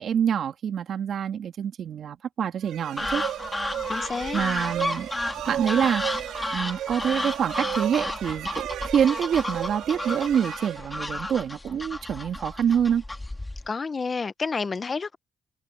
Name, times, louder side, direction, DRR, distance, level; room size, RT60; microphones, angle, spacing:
voice 1, 0.0-3.2 4.3-5.1 5.5-6.0 6.5-13.0, right 8 dB, 60° right, 3.2 m, -26 dB
sound 1, 2.6-11.4, right 12 dB, 85° right, 3.3 m, -35 dB
sound 2, 3.0-13.7, left 2 dB, 15° left, 2.4 m, -32 dB
voice 2, 3.9-4.4 13.7-15.2, left 4 dB, 35° left, 1.0 m, -29 dB
cardioid pair, 90°, 0 cm